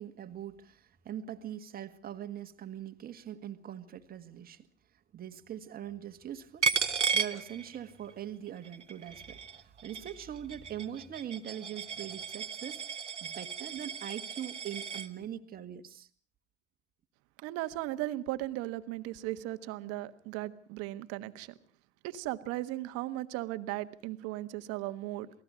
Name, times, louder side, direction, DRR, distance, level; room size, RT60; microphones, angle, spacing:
voice 1, 0.0-4.7 5.1-6.7 7.1-12.8 13.2-16.1, right 10 dB, 25° right, 1.8 m, -42 dB
Coin (dropping), 6.6-8.1 8.5-15.1, right 5 dB, 85° right, 1.3 m, -35 dB
voice 2, 17.4-21.5 22.0-25.3, right 16 dB, 45° right, 1.5 m, -37 dB
28.0 x 19.0 x 5.1 m
figure-of-eight pair, 85°, 35 cm